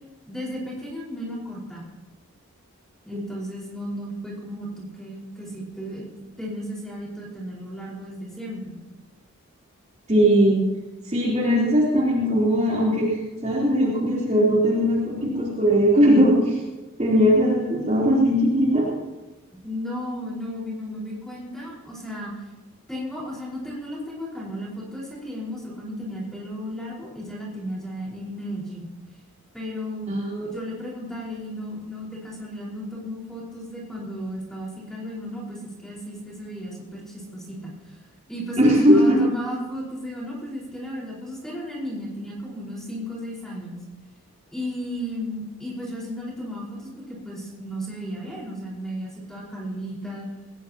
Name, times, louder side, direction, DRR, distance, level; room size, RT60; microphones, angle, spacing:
voice 1, 0.3-1.9 3.0-6.0 6.4-8.8 19.5-22.3 22.9-28.9 29.5-38.0 38.3-43.8 44.5-50.3, equal, ahead, -5 dB, 5.0 m, -34 dB
voice 2, 10.1-10.6 11.1-13.2 13.4-16.6 17.0-18.9 30.1-30.5 38.6-39.2, equal, 30° right, -5 dB, 3.8 m, -19 dB
21.0 x 19.0 x 3.0 m, 1.1 s
head